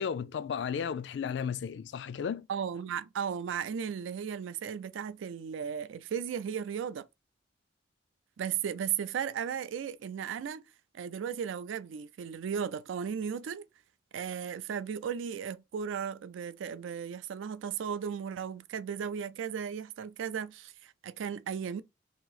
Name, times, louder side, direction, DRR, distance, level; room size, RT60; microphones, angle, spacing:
voice 1, 0.0-2.5, left 7 dB, 65° left, 0.3 m, -34 dB
voice 2, 2.5-7.1 8.4-10.6 10.9-13.7 14.1-21.8, right 7 dB, 90° right, 0.3 m, -35 dB
2.9 x 2.7 x 3.8 m
head